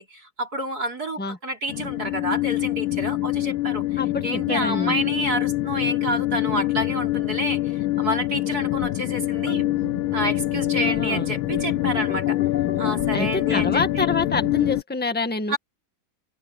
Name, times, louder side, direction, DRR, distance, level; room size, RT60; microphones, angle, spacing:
voice 1, 0.0-9.6 10.1-12.4 12.8-14.1 15.5-15.6, right 1 dB, 45° right, 5.0 m, -29 dB
sound 1, 1.7-14.8, left 16 dB, 80° left, 1.5 m, -25 dB
voice 2, 4.0-5.0 10.8-11.3 13.1-15.6, left 3 dB, 5° left, 1.6 m, -27 dB
sound 2, 9.4-14.7, left 3 dB, 30° left, 0.9 m, -37 dB
open air
omnidirectional pair, 2.3 m